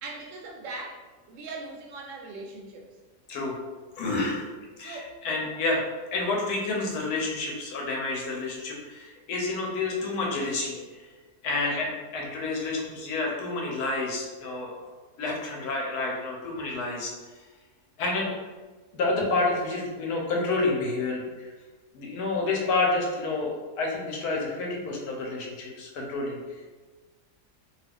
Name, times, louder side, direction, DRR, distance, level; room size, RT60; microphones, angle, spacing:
voice 1, 0.0-2.9 4.8-5.2 11.5-11.9, right 3 dB, 70° right, 0 dB, 0.8 m, -40 dB
voice 2, 4.0-4.4 4.8-5.8 6.1-11.1 11.4-14.9 15.2-17.4 18.0-18.3 18.9-21.5 21.9-26.4, left 3 dB, 75° left, -1 dB, 1.2 m, -29 dB
2.8 x 2.3 x 3.4 m, 1.3 s
omnidirectional pair, 1.7 m